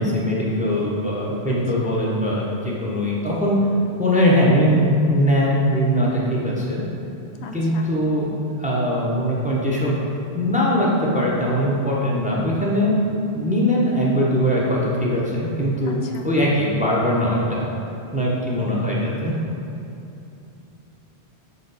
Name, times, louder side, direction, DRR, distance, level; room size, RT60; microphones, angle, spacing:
voice 1, 0.0-3.6 4.0-6.8 7.5-8.3 8.6-10.0 10.3-12.9 13.3-17.7 18.1-19.4, equal, 10° right, -4 dB, 0.7 m, -21 dB
voice 2, 7.4-7.9 15.8-16.3, left 4 dB, 85° left, 2 dB, 0.9 m, -39 dB
5.6 x 4.2 x 4.0 m, 2.8 s
omnidirectional pair, 1.1 m